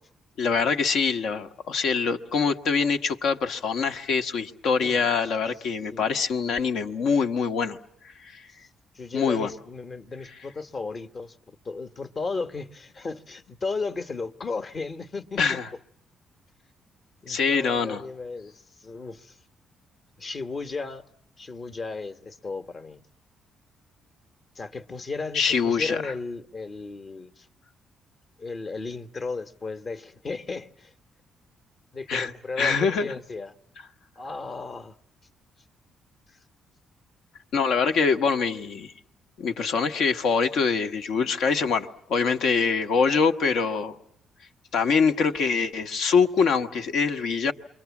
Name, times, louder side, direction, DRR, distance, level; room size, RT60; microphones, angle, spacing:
voice 1, 0.4-7.8 8.2-8.4 9.1-9.5 15.4-15.7 17.3-18.0 25.3-26.1 32.1-32.3 32.6-33.1 37.5-38.9 39.4-44.0 44.7-47.5, left 5 dB, 75° left, 1.2 m, -24 dB
voice 2, 8.9-15.6 17.2-18.5 18.8-19.4 20.2-21.0 21.4-23.0 24.5-27.5 28.4-30.9 31.9-33.5 34.2-34.9 36.3-36.4, left 4 dB, 40° left, 1.1 m, -35 dB
28.0 x 23.5 x 7.1 m
cardioid pair, 90°, 0 cm